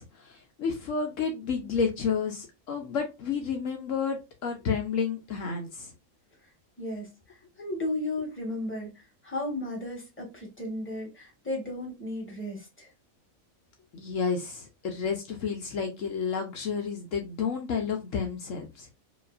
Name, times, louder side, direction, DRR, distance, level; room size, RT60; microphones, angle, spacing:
voice 1, 0.0-5.9 13.9-18.9, left 6 dB, 70° left, 1.1 m, -31 dB
voice 2, 6.8-12.9, left 1 dB, 10° left, 1.5 m, -35 dB
5.0 x 2.5 x 2.4 m
omnidirectional pair, 1.5 m